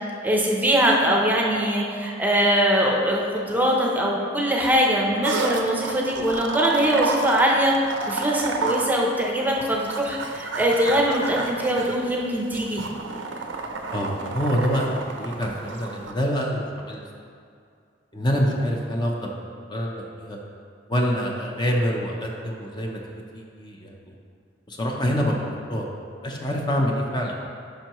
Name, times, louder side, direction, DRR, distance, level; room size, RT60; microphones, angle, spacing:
voice 1, 0.2-12.8, equal, 10° right, -2 dB, 0.7 m, -22 dB
sound 1, 5.2-16.1, right 3 dB, 85° right, 0.6 m, -31 dB
voice 2, 13.9-17.1 18.1-19.3 19.7-20.4 20.9-23.0 23.3-24.1 24.7-25.9 26.2-27.4, equal, 25° left, -1 dB, 0.7 m, -26 dB
10.0 x 5.4 x 3.0 m, 2.3 s
head